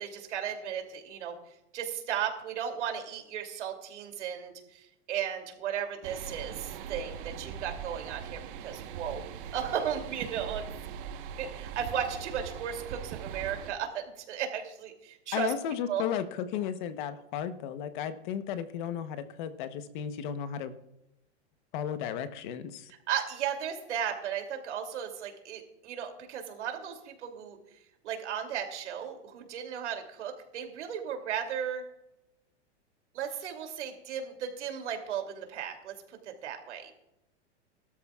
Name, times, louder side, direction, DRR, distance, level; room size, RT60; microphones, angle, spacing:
voice 1, 0.0-1.4 1.7-9.2 9.5-10.7 11.4-15.5 15.9-16.0 23.1-27.6 28.0-31.8 33.1-35.9 36.2-36.9, right 8 dB, 80° right, 4 dB, 2.9 m, -35 dB
sound 1, 6.0-13.7, right 8 dB, 50° right, 1.2 m, -41 dB
voice 2, 15.3-20.7 21.7-22.9, left 9 dB, 45° left, 10 dB, 1.0 m, -34 dB
21.5 x 13.0 x 2.4 m, 0.89 s
supercardioid pair, 160°, 35 cm